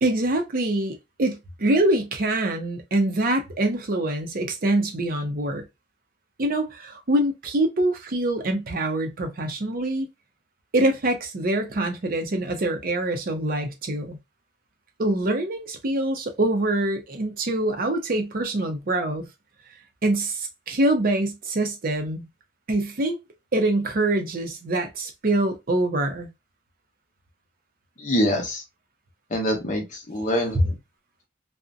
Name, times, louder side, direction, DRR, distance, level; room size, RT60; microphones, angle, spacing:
voice 1, 0.0-5.6 6.4-10.1 10.7-14.2 15.0-19.2 20.0-22.3 22.7-23.2 23.5-26.3, right 1 dB, 50° right, 0.6 m, -24 dB
voice 2, 28.0-28.6 29.3-30.8, equal, 40° left, 0.8 m, -25 dB
2.5 x 2.1 x 2.4 m
head